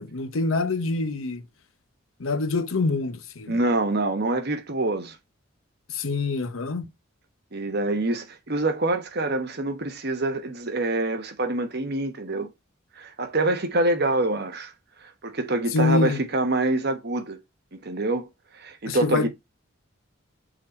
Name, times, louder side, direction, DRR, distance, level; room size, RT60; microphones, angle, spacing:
voice 1, 0.0-1.4 2.2-3.6 5.9-6.8 15.7-16.2 18.9-19.3, left 3 dB, 80° left, 0.8 m, -25 dB
voice 2, 3.5-5.2 7.5-12.5 13.0-14.7 15.2-17.4 17.8-18.3 18.5-19.3, right 2 dB, 50° right, 1.2 m, -26 dB
6.4 x 4.0 x 4.3 m
head